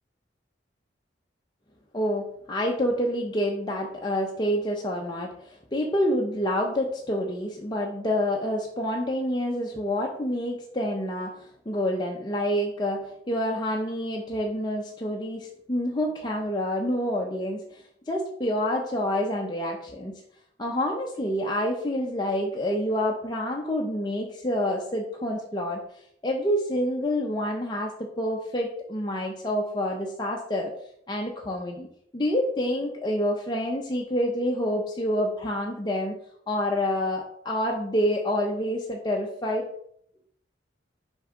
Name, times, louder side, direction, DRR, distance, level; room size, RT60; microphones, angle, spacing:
voice 1, 1.9-20.2 20.6-25.8 26.2-30.7 31.1-31.9 32.1-36.2 36.5-39.7, equal, 25° left, -1 dB, 0.8 m, -28 dB
6.5 x 4.5 x 3.8 m, 0.67 s
head